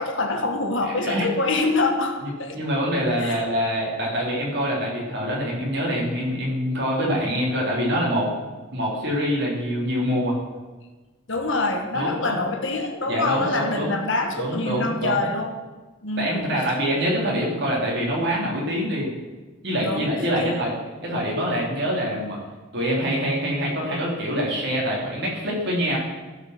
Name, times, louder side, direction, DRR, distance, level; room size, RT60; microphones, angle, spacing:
voice 1, 0.0-2.6 3.2-3.4 11.3-15.6 16.0-16.6 19.8-20.1 20.4-20.6, left 2 dB, 65° left, 4 dB, 1.5 m, -25 dB
voice 2, 0.9-1.3 2.2-8.3 8.7-10.4 11.9-12.4 13.1-13.9 14.4-15.3 16.2-19.1 19.6-20.7 21.0-22.4 22.7-26.0, equal, 55° right, -4 dB, 3.7 m, -25 dB
15.0 x 5.7 x 6.1 m, 1.2 s
head